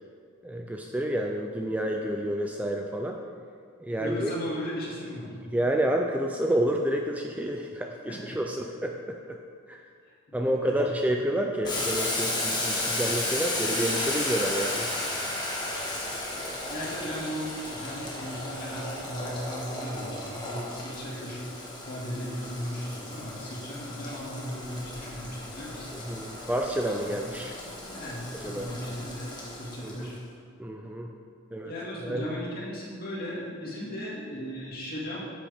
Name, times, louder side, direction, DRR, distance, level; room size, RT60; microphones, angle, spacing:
voice 1, 0.4-3.2 3.8-4.3 5.5-9.4 9.7-9.8 10.3-14.9 26.1-27.5 28.4-28.7 29.8-30.1 30.6-31.1 31.5-31.7 32.0-32.3, right 1 dB, 5° right, 1 dB, 0.4 m, -29 dB
voice 2, 4.0-5.4 8.1-8.4 10.0-10.9 16.7-21.5 21.8-25.9 27.0-30.1 31.6-35.2, equal, 45° left, -5 dB, 2.3 m, -37 dB
Boiling, 11.6-30.1, left 1 dB, 20° left, 1.7 m, -34 dB
10.5 x 7.8 x 3.5 m, 2.1 s
head